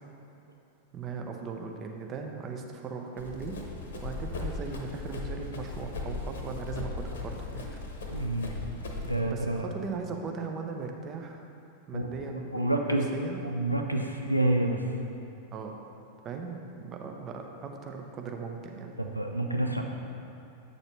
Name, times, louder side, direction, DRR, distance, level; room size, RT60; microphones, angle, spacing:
voice 1, 0.9-3.6 4.0-7.6 9.3-11.4 11.9-13.4 15.5-15.7 16.2-18.9, right 5 dB, 30° right, 3 dB, 0.7 m, -38 dB
Run, 3.2-9.2, left 3 dB, 65° left, 0.9 m, -37 dB
voice 2, 8.1-8.6 9.0-9.7 11.9-12.1 12.5-13.1 13.4-14.9 19.0-19.8, right 1 dB, 90° right, 2 dB, 0.4 m, -28 dB
8.3 x 6.5 x 3.1 m, 2.7 s
figure-of-eight pair, 90°, 0 cm